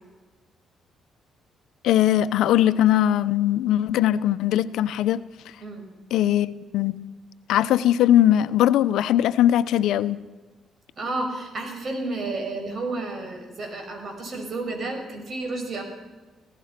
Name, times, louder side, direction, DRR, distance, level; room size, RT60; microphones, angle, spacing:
voice 1, 1.8-5.2 6.1-7.0 7.5-10.2, left 12 dB, 85° left, 13 dB, 0.8 m, -20 dB
voice 2, 11.0-15.8, right 2 dB, 45° right, 4 dB, 6.4 m, -31 dB
26.5 x 17.0 x 6.0 m, 1.2 s
cardioid pair, 90°, 0 cm